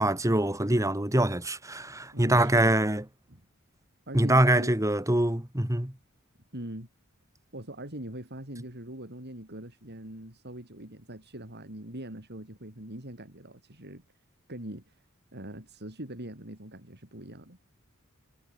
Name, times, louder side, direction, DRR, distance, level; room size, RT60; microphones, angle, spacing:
voice 1, 0.0-3.0 4.1-5.9, right 1 dB, 15° right, 2.3 m, -24 dB
voice 2, 2.1-2.8 3.3-3.4 4.1-4.8 6.5-6.9 7.5-14.0 14.5-15.0 15.3-17.6, right 1 dB, 50° right, 6.9 m, -42 dB
head